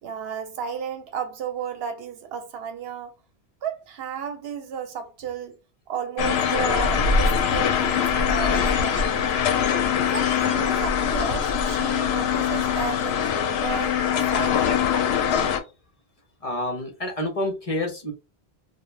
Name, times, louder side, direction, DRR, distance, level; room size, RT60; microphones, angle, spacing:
voice 1, 0.0-3.1 3.6-5.6 5.9-9.4 10.0-14.0 14.3-14.9, right 7 dB, 75° right, 0.8 m, -33 dB
sound 1, 6.2-15.6, left 7 dB, 80° left, 0.8 m, -22 dB
voice 2, 15.2-15.6 16.4-18.1, left 1 dB, 40° left, 0.7 m, -29 dB
2.3 x 2.2 x 3.1 m
omnidirectional pair, 1.0 m